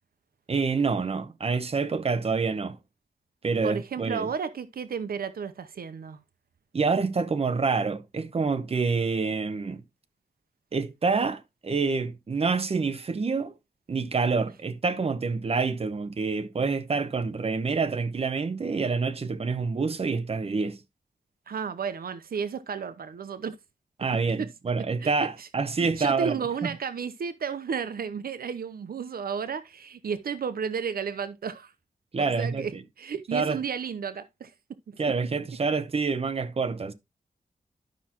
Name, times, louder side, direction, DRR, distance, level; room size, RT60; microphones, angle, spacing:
voice 1, 0.5-2.8 3.4-4.3 6.7-9.8 10.7-13.5 13.9-20.8 24.0-26.3 26.6-26.7 32.1-32.6 33.3-33.6 35.0-36.9, right 4 dB, 40° right, 0.8 m, -27 dB
voice 2, 3.6-6.2 21.5-23.5 24.3-24.5 25.0-25.1 25.4-25.5 26.0-31.7 32.2-32.7 33.0-34.5 34.9-35.0, right 6 dB, 90° right, 0.8 m, -32 dB
11.5 x 5.9 x 2.9 m
wide cardioid pair, 145°, 15 cm